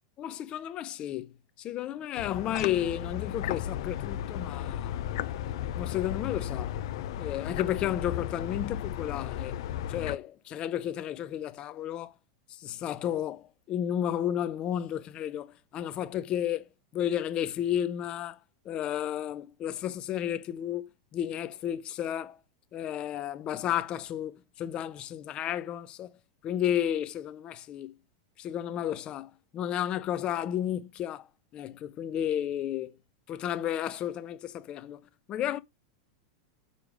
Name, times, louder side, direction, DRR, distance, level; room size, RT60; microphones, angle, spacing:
voice 1, 0.2-1.3 1.6-5.1 5.8-6.7 7.2-9.6 9.9-12.1 12.5-18.4 18.6-22.4 22.7-26.2 26.4-27.9 28.4-31.3 31.5-33.0 33.3-35.6, left 11 dB, 35° left, 0.9 m, -32 dB
sound 1, 2.2-10.2, left 11 dB, 65° left, 0.6 m, -34 dB
6.9 x 4.8 x 5.0 m
hypercardioid pair, 125°, 3 cm